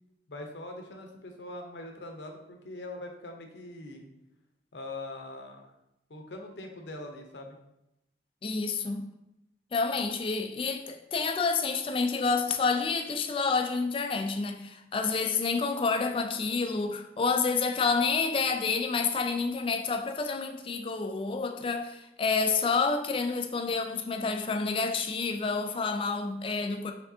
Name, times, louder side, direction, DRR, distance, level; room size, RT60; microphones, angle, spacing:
voice 1, 0.3-4.1 4.7-5.6 6.1-7.6, left 2 dB, 75° left, 0.7 m, -42 dB
voice 2, 8.4-9.0 9.7-26.9, left 4 dB, 30° left, 0.3 m, -29 dB
4.8 x 3.5 x 2.7 m
head